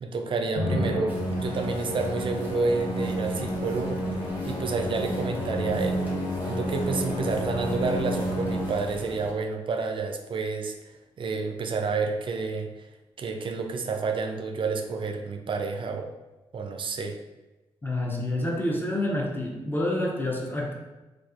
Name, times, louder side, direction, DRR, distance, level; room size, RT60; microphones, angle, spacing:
voice 1, 0.0-6.0 6.5-12.9 13.2-16.1 16.5-17.2, right 4 dB, 45° right, 5 dB, 0.3 m, -30 dB
Musical instrument, 0.6-9.1, equal, 55° left, 0.7 m, -30 dB
sound 1, 1.1-9.3, right 1 dB, 15° right, 0.8 m, -42 dB
voice 2, 17.8-20.7, left 1 dB, 15° left, -1 dB, 0.6 m, -28 dB
2.4 x 2.3 x 2.3 m, 1.1 s
hypercardioid pair, 45°, 12 cm